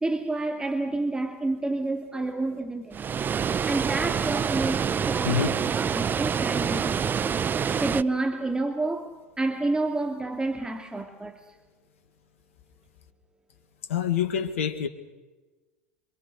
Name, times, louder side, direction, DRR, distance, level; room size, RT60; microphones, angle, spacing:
voice 1, 0.0-3.1 3.6-7.2 7.8-11.5, right 2 dB, 10° right, 2.4 m, -29 dB
Water, 2.9-8.0, right 7 dB, 25° right, 0.7 m, -26 dB
voice 2, 5.2-5.6 13.9-14.9, left 8 dB, 75° left, 2.0 m, -26 dB
27.5 x 25.5 x 6.6 m
hypercardioid pair, 85°, 7 cm